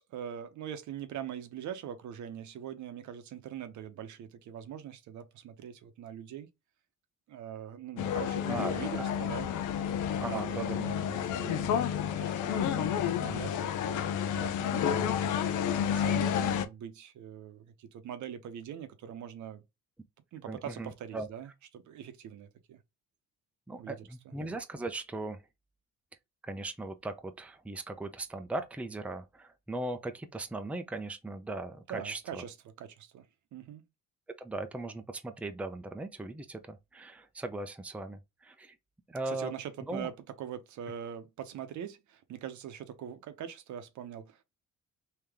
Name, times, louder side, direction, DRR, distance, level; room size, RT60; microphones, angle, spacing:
voice 1, 0.0-6.5 7.3-9.5 10.2-10.5 10.7-15.1 15.6-19.6 20.3-22.8 23.8-24.0 31.9-33.3 33.5-33.8 39.2-40.1 40.4-44.4, right 9 dB, 70° right, 0.7 m, -42 dB
sound 1, 8.0-16.7, left 9 dB, 85° left, 0.5 m, -30 dB
voice 2, 8.5-9.0 10.2-10.9 20.5-21.3 23.7-25.4 26.4-32.4 34.4-38.8 39.1-39.5 39.9-40.1, right 2 dB, 5° right, 0.5 m, -38 dB
3.3 x 2.8 x 3.4 m
cardioid pair, 90°, 30 cm